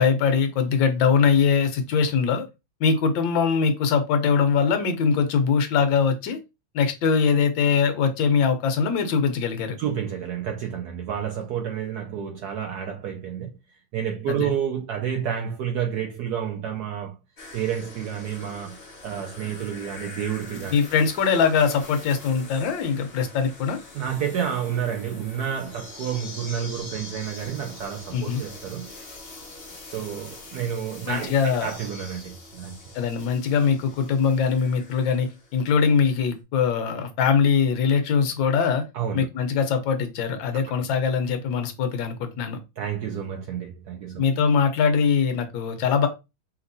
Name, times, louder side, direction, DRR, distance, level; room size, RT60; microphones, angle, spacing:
voice 1, 0.0-2.4 2.8-6.4 6.7-9.8 14.3-14.5 20.7-23.8 28.1-28.4 31.1-31.7 32.9-38.8 39.1-42.6 44.2-46.1, left 6 dB, 75° left, 1.5 m, -22 dB
voice 2, 9.8-13.5 13.9-17.2 17.5-18.8 19.0-20.7 23.9-28.9 29.9-32.8 38.9-39.3 42.8-44.2, right 8 dB, 75° right, 0.9 m, -30 dB
sound 1, 17.4-35.9 36.2-36.3, left 2 dB, 40° left, 1.0 m, -43 dB
5.2 x 2.9 x 2.6 m
omnidirectional pair, 2.2 m